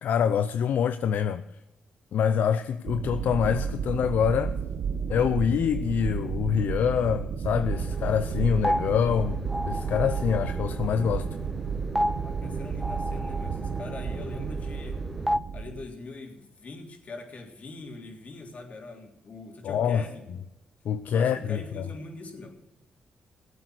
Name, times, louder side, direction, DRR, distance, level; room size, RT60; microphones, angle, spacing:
voice 1, 0.0-1.4 2.1-4.5 5.1-11.3 19.6-20.0 20.9-21.8, left 8 dB, 75° left, 0.5 m, -25 dB
sound 1, 2.9-15.8, right 6 dB, 70° right, 1.0 m, -32 dB
sound 2, 7.7-15.4, equal, ahead, 0.4 m, -33 dB
voice 2, 12.2-15.0 15.5-20.3 21.1-22.6, left 3 dB, 50° left, 3.5 m, -42 dB
16.5 x 8.4 x 6.5 m
cardioid pair, 70°, 3 cm